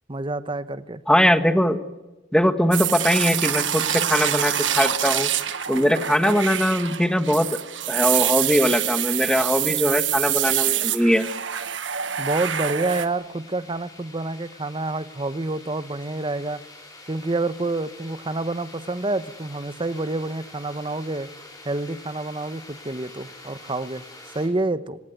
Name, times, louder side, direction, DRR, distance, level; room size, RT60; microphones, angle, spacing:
voice 1, 0.1-1.0 12.2-16.6 17.1-21.3 21.6-24.1 24.3-25.0, right 2 dB, 25° right, 13 dB, 1.0 m, -28 dB
voice 2, 1.1-1.8 2.3-5.3 5.7-7.6 7.9-11.3, equal, 5° left, 9 dB, 1.3 m, -21 dB
sound 1, 2.7-13.1, right 11 dB, 80° right, 1.5 m, -25 dB
sound 2, 12.9-24.5, left 2 dB, 20° left, 5.6 m, -46 dB
26.5 x 17.0 x 9.5 m, 1.1 s
head